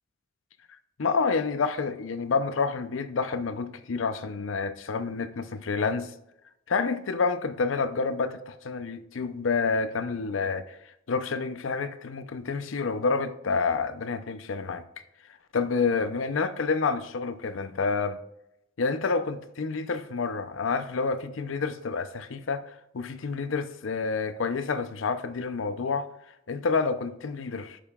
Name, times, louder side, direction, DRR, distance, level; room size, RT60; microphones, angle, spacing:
voice 1, 1.0-6.1 6.7-10.8 11.1-14.8 15.5-18.2 18.8-26.1 26.5-27.8, left 4 dB, 80° left, 0.6 m, -28 dB
8.5 x 6.8 x 2.3 m
head